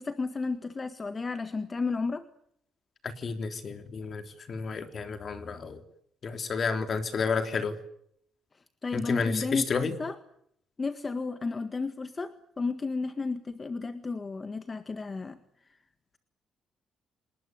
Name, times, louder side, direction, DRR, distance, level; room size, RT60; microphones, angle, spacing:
voice 1, 0.0-2.2 8.8-10.2 10.8-15.4 15.6-15.8, left 4 dB, 30° left, 10 dB, 1.7 m, -33 dB
voice 2, 3.2-4.2 4.5-5.8 6.2-7.8 8.9-9.9, left 5 dB, 50° left, 7 dB, 3.6 m, -31 dB
29.0 x 20.0 x 9.5 m, 0.71 s
cardioid pair, 90°, 0 cm